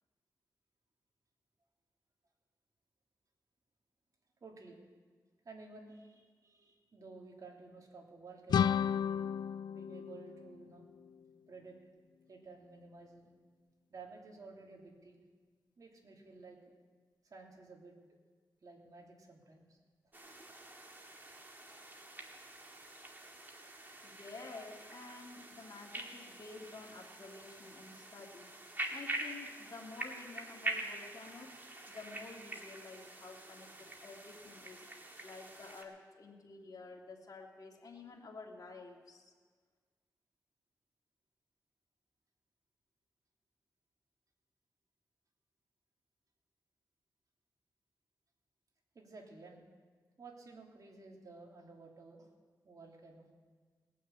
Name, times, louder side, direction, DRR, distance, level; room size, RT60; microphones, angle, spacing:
voice 1, 4.4-4.8 5.4-8.7 9.7-10.9 11.5-11.8 12.3-13.3 13.9-15.2 15.8-16.6 17.2-17.9 18.6-19.8 48.9-49.6 50.2-52.3 52.6-53.3, right 3 dB, 55° right, -1 dB, 3.0 m, -53 dB
sound 1, 8.5-11.3, left 8 dB, 75° left, 0.4 m, -33 dB
sound 2, 20.1-35.8, right 2 dB, 25° right, 1.9 m, -45 dB
voice 2, 24.0-28.5 28.9-31.6 31.9-34.8 35.2-39.3, left 3 dB, 60° left, -1 dB, 2.1 m, -51 dB
19.5 x 6.5 x 8.1 m, 1.5 s
cardioid pair, 70°, 7 cm